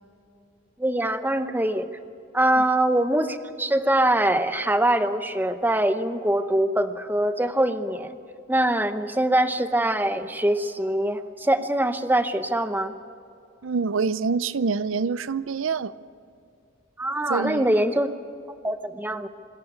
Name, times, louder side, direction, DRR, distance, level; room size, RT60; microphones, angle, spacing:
voice 1, 0.8-1.9 2.3-8.2 8.5-12.9 17.0-18.1 18.6-19.3, right 1 dB, 10° right, 10 dB, 0.8 m, -23 dB
voice 2, 13.6-15.9 17.3-17.7, right 5 dB, 85° right, 16 dB, 0.6 m, -26 dB
26.0 x 13.5 x 8.3 m, 2.5 s
head